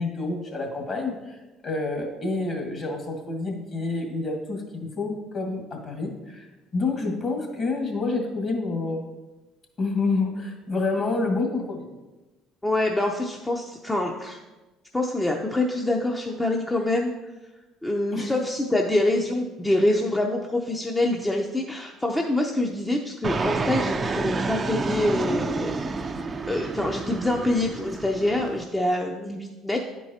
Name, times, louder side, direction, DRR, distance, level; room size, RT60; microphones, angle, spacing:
voice 1, 0.0-6.5 6.7-9.0 9.8-11.9 18.1-18.3, left 3 dB, 40° left, 1 dB, 1.9 m, -28 dB
voice 2, 12.6-14.4 14.9-17.1 17.8-25.8 26.5-29.8, left 1 dB, 10° left, 1 dB, 0.7 m, -25 dB
Fixed-wing aircraft airplane, 23.2-28.6, right 3 dB, 35° right, 0.5 m, -29 dB
10.0 x 4.6 x 2.9 m, 1.1 s
supercardioid pair, 75°, 0 cm